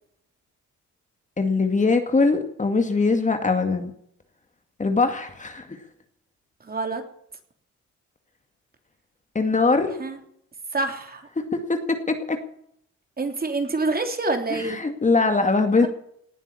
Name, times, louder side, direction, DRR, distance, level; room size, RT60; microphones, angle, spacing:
voice 1, 1.4-3.9 4.8-5.8 9.3-9.9 11.4-12.4 14.5-15.9, left 3 dB, 25° left, 6 dB, 2.3 m, -22 dB
voice 2, 6.6-7.0 10.0-10.2 10.7-11.3 13.2-14.8, right 3 dB, 30° right, 5 dB, 3.3 m, -26 dB
19.0 x 7.4 x 9.9 m, 0.68 s
cardioid pair, 90°, 30 cm